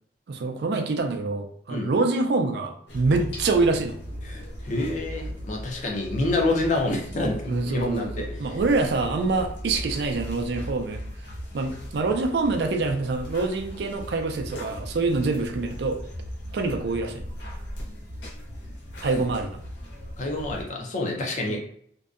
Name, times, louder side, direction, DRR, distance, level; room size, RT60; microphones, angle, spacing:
voice 1, 0.3-4.0 7.5-11.0 11.5-16.0 16.5-17.2 19.0-19.6 21.5-21.6, right 3 dB, 65° right, 5 dB, 0.4 m, -25 dB
sound 1, 2.9-20.6, equal, 80° left, 0.8 m, -38 dB
voice 2, 4.2-8.1 8.5-8.6 18.9-19.1 20.2-21.6, left 2 dB, 40° left, 1 dB, 0.5 m, -27 dB
2.6 x 2.2 x 2.4 m, 0.62 s
head